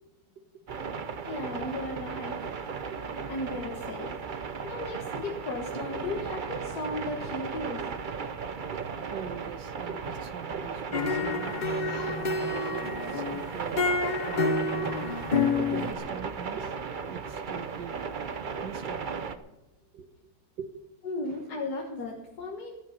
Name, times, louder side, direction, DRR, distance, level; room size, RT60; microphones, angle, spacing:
sound 1, 0.7-19.4, right 5 dB, 50° right, 0.6 m, -36 dB
voice 1, 1.3-2.4 3.3-7.8 21.0-22.7, left 2 dB, 65° left, 0 dB, 2.0 m, -35 dB
voice 2, 8.5-11.5 12.0-13.9 14.2-15.1 15.7-16.8 17.1-18.0 18.6-19.3 19.9-20.1 20.6-20.7 21.2-21.5, right 7 dB, 75° right, 9 dB, 1.8 m, -42 dB
sound 2, 10.9-15.9, left 4 dB, 45° left, 0.6 m, -29 dB
16.0 x 11.5 x 5.3 m, 1.0 s
omnidirectional pair, 1.9 m